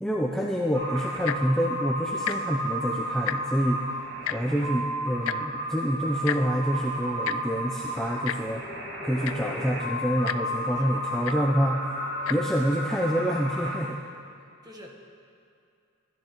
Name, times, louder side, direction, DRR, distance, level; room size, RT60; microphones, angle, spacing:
voice 1, 0.0-3.9 4.3-8.6 9.0-11.8 12.3-14.0, equal, ahead, -1 dB, 0.4 m, -27 dB
sound 1, 0.7-13.8, right 1 dB, 60° right, 1.8 m, -33 dB
Tick-tock, 1.1-1.5 2.2-2.4 2.7-2.8 3.1-3.6 4.2-4.4 5.2-5.4 6.2-6.4 7.2-7.4 8.2-8.4 9.0-9.1 9.2-9.5 10.2-10.4 11.2-11.4 12.2-12.4 13.1-13.2, left 11 dB, 75° left, 0.3 m, -30 dB
voice 2, 14.6-15.1, equal, 20° right, 0 dB, 1.1 m, -49 dB
13.0 x 11.0 x 2.9 m, 2.4 s
head